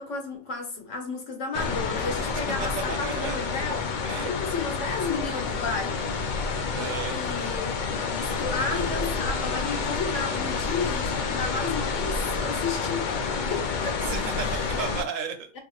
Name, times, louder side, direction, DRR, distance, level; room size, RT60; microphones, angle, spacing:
voice 1, 0.0-3.9 4.3-6.0 7.1-13.1 13.5-14.8, left 4 dB, 65° left, 1.3 m, -33 dB
sound 1, 1.5-15.0, left 4 dB, 85° left, 0.4 m, -29 dB
voice 2, 2.3-3.4 4.0-4.3 4.5-4.6 6.7-7.2 14.0-15.5, right 6 dB, 70° right, 1.1 m, -34 dB
4.3 x 2.9 x 2.4 m
omnidirectional pair, 1.5 m